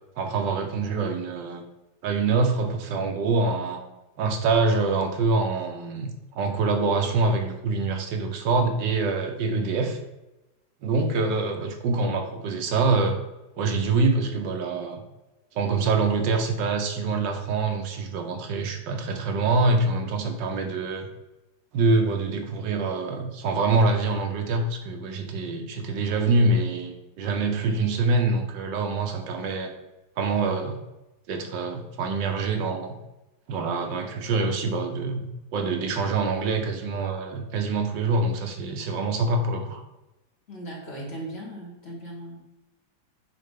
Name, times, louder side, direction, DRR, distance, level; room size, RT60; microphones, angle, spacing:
voice 1, 0.2-1.6 2.0-3.8 4.2-10.0 10.8-13.2 13.6-15.0 15.5-21.1 21.7-29.7 30.2-30.8 31.3-33.0 33.5-39.8, right 3 dB, 75° right, 4 dB, 1.4 m, -25 dB
voice 2, 40.5-42.4, right 1 dB, 35° left, -3 dB, 1.6 m, -38 dB
6.4 x 4.9 x 3.6 m, 1.0 s
omnidirectional pair, 2.0 m